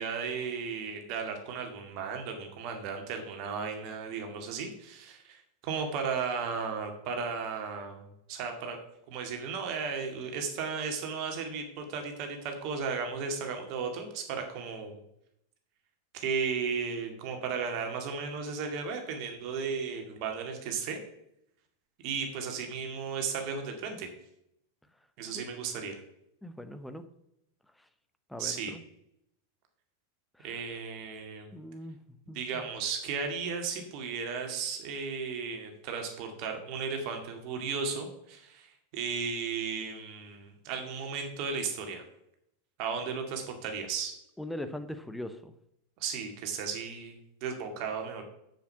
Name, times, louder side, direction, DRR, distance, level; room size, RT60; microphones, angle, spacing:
voice 1, 0.0-8.8 9.1-15.0 16.1-21.0 22.0-24.1 25.2-26.0 28.4-28.7 30.4-31.5 32.3-42.0 42.8-44.1 46.0-48.2, right 5 dB, 45° right, 4 dB, 2.1 m, -35 dB
voice 2, 26.4-27.0 28.3-28.8 30.4-30.6 31.5-32.6 44.4-45.5, left 1 dB, 5° left, 10 dB, 0.8 m, -41 dB
7.5 x 6.9 x 5.8 m, 0.78 s
figure-of-eight pair, 90°, 0 cm